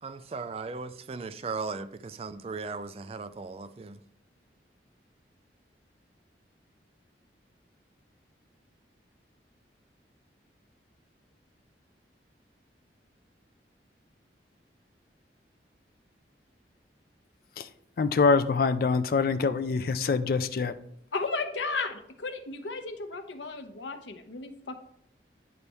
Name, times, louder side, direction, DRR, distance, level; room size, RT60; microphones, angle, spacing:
voice 1, 0.0-4.0, right 4 dB, 35° right, 0.3 m, -37 dB
voice 2, 18.0-20.7, left 4 dB, 55° left, 0.4 m, -25 dB
voice 3, 21.1-24.7, left 3 dB, 85° left, 0.8 m, -34 dB
9.6 x 4.1 x 3.4 m
head